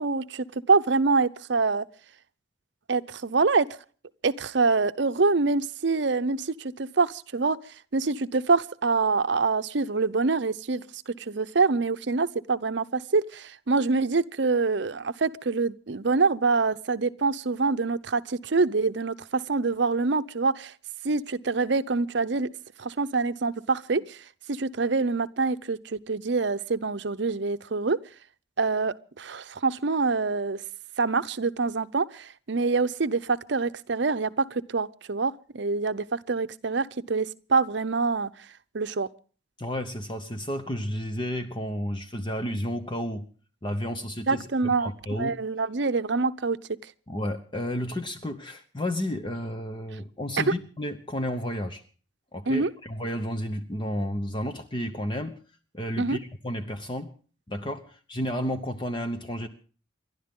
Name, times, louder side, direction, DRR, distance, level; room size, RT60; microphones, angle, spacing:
voice 1, 0.0-1.9 2.9-3.7 4.2-7.6 7.9-20.7 21.0-22.5 22.8-28.0 28.6-30.6 31.0-38.3 38.7-39.1 44.3-46.6 52.5-52.7 56.0-56.2, right 4 dB, 65° right, 0.7 m, -25 dB
voice 2, 39.6-43.3 43.6-45.3 47.1-51.8 52.3-55.4 55.7-57.1 57.5-59.5, equal, 25° left, 0.9 m, -32 dB
29.0 x 12.0 x 3.7 m
head